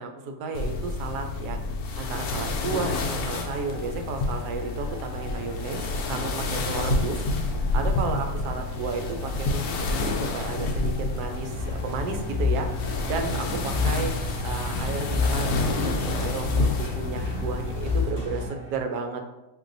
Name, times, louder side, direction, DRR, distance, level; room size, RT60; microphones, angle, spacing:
voice 1, 0.0-1.6 2.0-7.3 7.7-10.0 10.3-12.7 13.1-14.1 14.4-19.3, right 4 dB, 75° right, 4 dB, 1.1 m, -33 dB
sound 1, 0.5-18.1, left 3 dB, 75° left, 0.7 m, -29 dB
sound 2, 2.7-18.7, equal, 40° right, 1.7 m, -48 dB
sound 3, 11.5-18.5, left 3 dB, 20° right, 0.9 m, -29 dB
5.3 x 2.6 x 2.6 m, 1.0 s
omnidirectional pair, 1.8 m